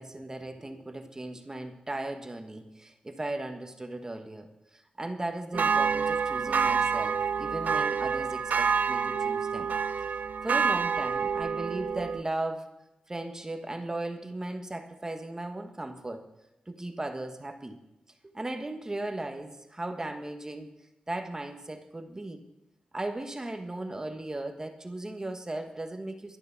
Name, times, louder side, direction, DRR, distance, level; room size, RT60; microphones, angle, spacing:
voice 1, 0.0-9.7 10.4-12.7 13.1-16.3 16.7-17.8 18.3-20.7 21.1-22.4 22.9-26.4, right 2 dB, 20° right, 6 dB, 1.4 m, -37 dB
sound 1, 5.5-12.2, right 6 dB, 75° right, 0.6 m, -28 dB
12.5 x 10.5 x 6.0 m, 0.93 s
wide cardioid pair, 100°, 3 cm